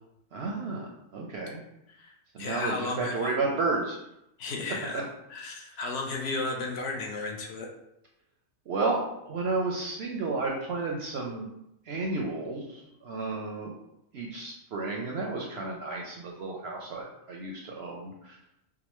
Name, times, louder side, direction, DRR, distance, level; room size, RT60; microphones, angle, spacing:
voice 1, 0.3-1.6 2.3-4.0 4.9-5.0 8.7-11.5 11.9-13.7 14.1-18.4, right 3 dB, 65° right, -1 dB, 0.7 m, -32 dB
voice 2, 1.9-3.3 4.4-5.0 5.3-7.7, left 3 dB, 60° left, 1 dB, 0.8 m, -34 dB
4.8 x 2.0 x 3.0 m, 0.81 s
omnidirectional pair, 1.4 m